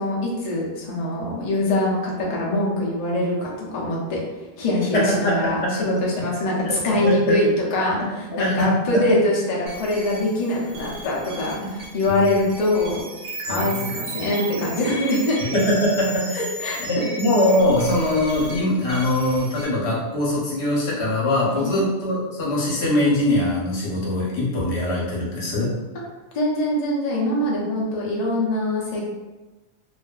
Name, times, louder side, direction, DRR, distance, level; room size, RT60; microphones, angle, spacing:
voice 1, 0.0-4.2 4.6-13.0 13.5-15.4 16.6-16.8 21.5-21.7 26.3-29.0, left 1 dB, 45° left, -4 dB, 0.6 m, -23 dB
voice 2, 4.9-6.0 6.7-6.8 7.0-7.4 8.3-8.7 8.9-9.0 13.5-13.9 15.5-16.5 16.8-25.7, left 1 dB, 75° left, -5 dB, 1.0 m, -22 dB
sound 1, 9.7-19.6, right 2 dB, 65° right, 0.7 m, -35 dB
2.5 x 2.4 x 2.2 m, 1.1 s
omnidirectional pair, 1.1 m